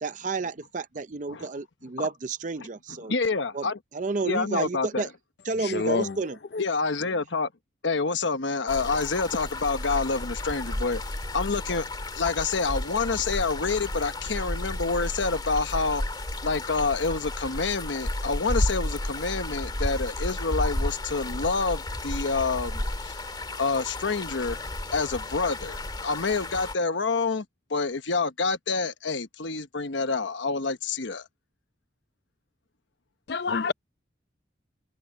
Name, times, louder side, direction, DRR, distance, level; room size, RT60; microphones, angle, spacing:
voice 1, 0.0-3.1 3.5-3.7 3.9-5.1 5.4-6.4, right 3 dB, 40° right, 0.5 m, -31 dB
voice 2, 3.0-3.8 4.2-5.1 6.6-7.5 7.8-11.9 12.1-16.0 16.4-23.2 23.6-24.6 24.9-27.4 27.7-31.3, left 4 dB, 80° left, 1.1 m, -28 dB
voice 3, 5.6-6.2 6.5-6.6 33.3-33.7, left 4 dB, 60° left, 0.5 m, -27 dB
sound 1, 8.7-26.7, left 1 dB, 25° left, 1.8 m, -32 dB
head